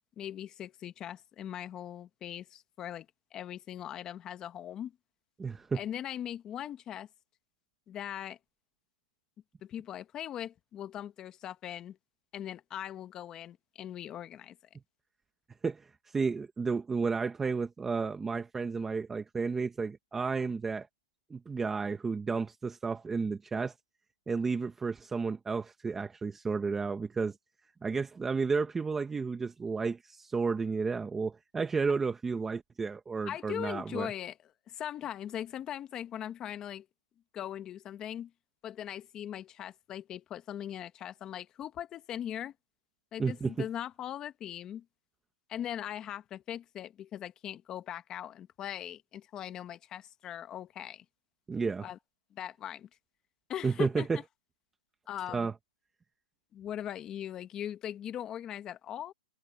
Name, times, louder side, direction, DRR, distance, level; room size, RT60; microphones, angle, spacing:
voice 1, 0.2-3.1 3.3-4.9 5.7-7.1 7.9-8.4 9.6-12.0 12.3-14.6 33.3-34.4 34.7-36.9 37.3-38.3 38.6-42.5 43.1-44.8 45.5-51.0 51.8-52.0 52.3-52.9 53.5-54.2 55.1-55.5 56.5-59.1, left 10 dB, 20° left, 1.2 m, -40 dB
voice 2, 5.4-5.8 15.6-20.9 21.3-23.7 24.3-27.4 27.8-34.1 43.2-43.6 51.5-51.9 53.6-54.2 55.3-55.5, right 4 dB, 10° right, 1.0 m, -32 dB
hypercardioid pair, 160°, 4 cm